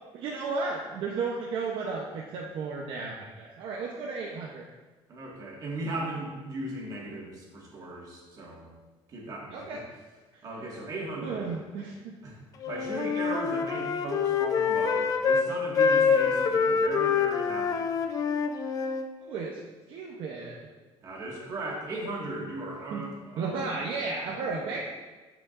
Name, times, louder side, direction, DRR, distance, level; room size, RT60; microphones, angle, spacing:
voice 1, 0.1-4.6 9.5-9.8 11.2-12.2 19.2-19.6 19.9-20.6 22.9-23.0 23.4-24.9, right 4 dB, 55° right, -2 dB, 0.8 m, -33 dB
voice 2, 5.1-8.7 9.1-9.8 10.4-11.5 12.2-12.4 12.6-17.9 21.0-23.6 24.3-24.6, right 2 dB, 35° right, -3 dB, 1.8 m, -37 dB
Wind instrument woodwind instrument, 12.6-15.5 15.8-19.1, left 6 dB, 35° left, 0.5 m, -26 dB
13.0 x 5.0 x 2.5 m, 1.3 s
cardioid pair, 170°, 10 cm